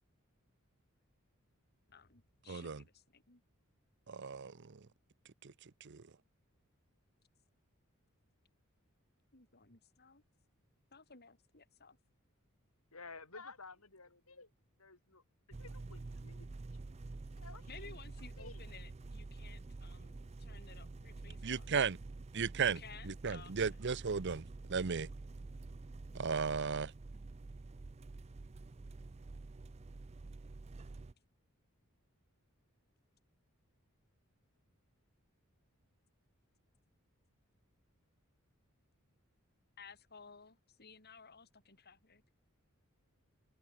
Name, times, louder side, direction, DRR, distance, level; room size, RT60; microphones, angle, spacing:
voice 1, 1.9-3.4 9.3-10.2 10.9-12.0 17.7-21.6 22.6-23.5 39.8-42.2, left 5 dB, 50° left, 4.2 m, -56 dB
voice 2, 2.5-2.8 4.1-4.8 5.4-5.5 5.8-6.0 21.4-22.0 22.3-25.1 26.1-26.9, right 6 dB, 55° right, 0.7 m, -36 dB
voice 3, 12.9-14.5 14.8-15.2 15.6-16.7 17.4-18.0 18.4-18.6, left 4 dB, 80° left, 7.3 m, -53 dB
sound 1, 15.5-31.1, right 3 dB, 30° right, 0.4 m, -48 dB
open air
head